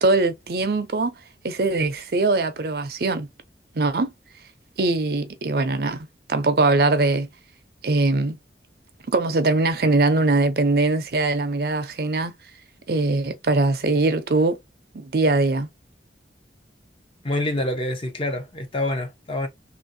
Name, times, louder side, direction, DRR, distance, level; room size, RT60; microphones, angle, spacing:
voice 1, 0.0-1.1 1.4-3.3 3.7-4.1 4.8-7.3 7.8-8.4 9.1-12.4 12.9-14.6 14.9-15.7, right 2 dB, 60° right, 0.5 m, -21 dB
voice 2, 17.2-19.5, left 1 dB, 30° left, 0.7 m, -26 dB
3.0 x 2.5 x 2.6 m
head